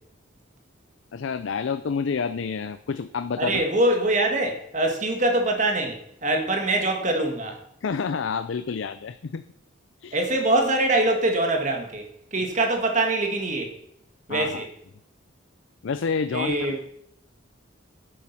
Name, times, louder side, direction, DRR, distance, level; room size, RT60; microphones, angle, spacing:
voice 1, 1.1-3.6 7.8-9.4 10.0-10.2 12.4-12.5 14.3-14.6 15.8-17.0, left 5 dB, 65° left, 11 dB, 0.4 m, -29 dB
voice 2, 3.4-7.6 10.1-12.0 12.3-13.7 14.3-14.7 16.3-16.8, right 2 dB, 35° right, 3 dB, 1.7 m, -23 dB
10.0 x 7.6 x 5.8 m, 0.72 s
head